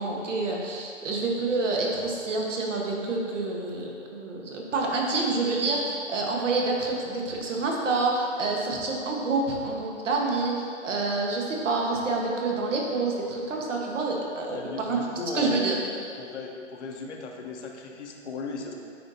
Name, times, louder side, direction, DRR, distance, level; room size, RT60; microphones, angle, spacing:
voice 1, 0.0-15.0 15.3-15.8, right 3 dB, 75° right, -1 dB, 1.3 m, -28 dB
voice 2, 14.5-15.7 16.2-18.7, left 4 dB, 65° left, 1 dB, 0.9 m, -36 dB
9.2 x 4.0 x 2.7 m, 2.3 s
hypercardioid pair, 145°, 38 cm